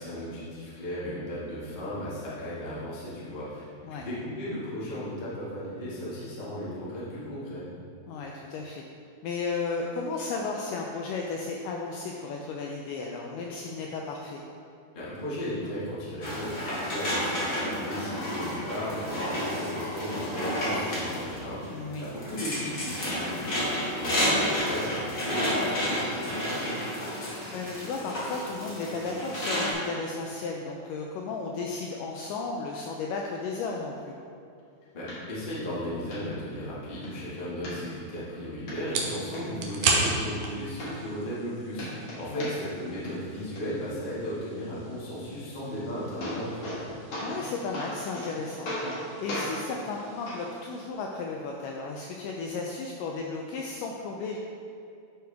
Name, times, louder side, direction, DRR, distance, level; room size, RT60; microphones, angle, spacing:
voice 1, 0.0-7.6 14.9-26.8 34.9-46.8, equal, 30° left, -9 dB, 0.9 m, -36 dB
voice 2, 8.1-8.8 9.2-14.4 21.7-22.1 27.5-34.2 42.3-42.6 47.2-48.7 49.2-54.4, left 4 dB, 80° left, 0 dB, 1.9 m, -34 dB
sound 1, 16.2-29.7, equal, 65° left, 0.8 m, -31 dB
sound 2, 35.1-35.2 35.6-35.7 36.1-36.2 36.7-37.1 37.6-38.2 38.7-38.8 39.2-39.9 40.5-40.6 40.8-41.5 41.7-42.8 43.0-43.6 45.6-45.7 46.0-46.8 47.1-47.4 47.7-48.3 48.6-49.0 49.3-49.5 50.3-50.4 51.3-51.4, left 1 dB, 50° left, 1.9 m, -36 dB
sound 3, 37.7-50.9, right 3 dB, 80° right, 1.6 m, -36 dB
11.0 x 4.7 x 3.5 m, 2.5 s
omnidirectional pair, 4.2 m